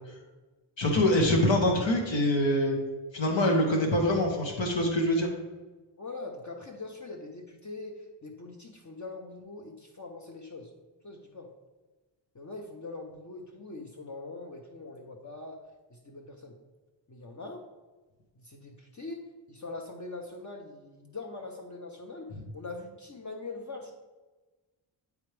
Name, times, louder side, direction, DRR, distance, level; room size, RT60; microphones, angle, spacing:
voice 1, 0.8-2.8 3.1-5.3, left 1 dB, 70° left, 0 dB, 1.2 m, -24 dB
voice 2, 6.0-10.7 11.0-11.5 12.3-15.6 15.9-16.6 17.1-17.6 18.4-19.2 19.5-24.0, left 3 dB, 40° left, 1 dB, 0.8 m, -42 dB
10.0 x 3.4 x 3.3 m, 1.2 s
cardioid pair, 70°, 47 cm